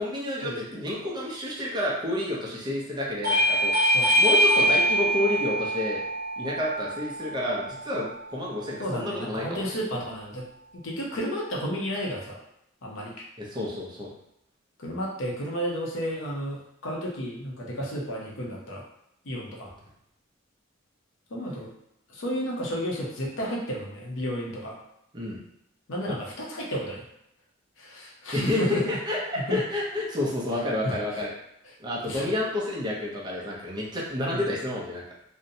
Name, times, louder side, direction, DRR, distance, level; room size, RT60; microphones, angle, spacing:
voice 1, 0.0-6.0 6.4-9.6 13.4-14.1 25.1-25.4 26.1-26.2 28.3-31.3 31.8-35.0, left 1 dB, 20° right, -4 dB, 0.5 m, -30 dB
Bell / Doorbell, 3.2-8.4, equal, 45° right, 0.8 m, -24 dB
voice 2, 8.8-10.4 10.7-12.4 12.8-13.2 14.8-18.8 19.3-19.7 21.3-21.7 22.1-24.8 25.9-27.0 27.8-29.0 29.4-29.6 30.8-31.2 32.1-32.3 34.3-34.4, equal, 70° left, -2 dB, 0.6 m, -32 dB
2.6 x 2.0 x 2.6 m, 0.78 s
head